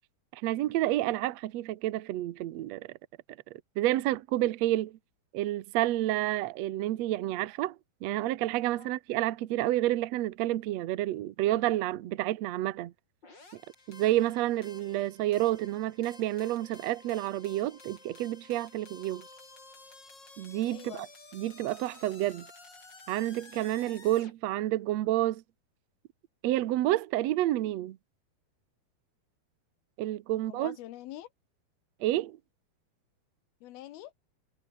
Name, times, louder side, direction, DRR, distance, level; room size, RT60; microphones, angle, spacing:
voice 1, 0.3-2.9 3.8-5.0 5.3-12.9 13.9-19.2 20.4-20.9 21.3-22.5 23.1-25.4 26.4-28.0 30.0-30.7 32.0-32.4, right 15 dB, 75° right, 1.5 m, -29 dB
sound 1, 13.2-24.3, left 3 dB, 25° left, 6.2 m, -53 dB
voice 2, 20.7-21.1 30.3-31.3 33.6-34.1, left 14 dB, 75° left, 2.9 m, -45 dB
omnidirectional pair, 4.5 m